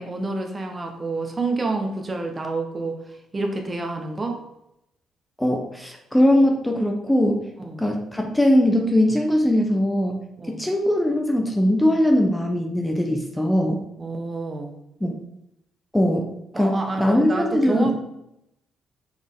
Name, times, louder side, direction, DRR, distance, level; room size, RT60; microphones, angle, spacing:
voice 1, 0.0-3.0 3.3-4.4 7.6-7.8 10.4-10.6 14.0-14.8 16.5-17.9, right 3 dB, 30° right, 3 dB, 1.1 m, -28 dB
voice 2, 5.4-7.5 7.8-13.8 15.0-15.2 15.9-17.9, left 1 dB, 10° left, 2 dB, 0.8 m, -21 dB
6.2 x 4.3 x 3.7 m, 0.81 s
cardioid pair, 90°, 0 cm